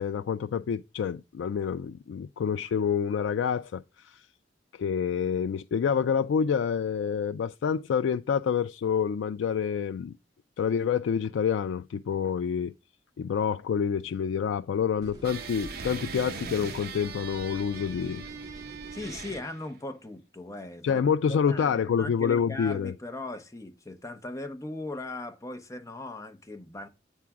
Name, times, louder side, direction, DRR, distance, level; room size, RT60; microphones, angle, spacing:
voice 1, 0.0-4.2 4.7-10.1 10.6-12.7 13.2-18.2 20.8-22.9, left 7 dB, 80° left, 0.3 m, -27 dB
sound 1, 15.0-19.4, right 1 dB, 20° right, 1.8 m, -47 dB
sound 2, 15.2-19.7, right 5 dB, 55° right, 0.9 m, -40 dB
voice 2, 18.9-26.9, left 2 dB, 15° left, 0.8 m, -39 dB
8.4 x 3.6 x 5.8 m
head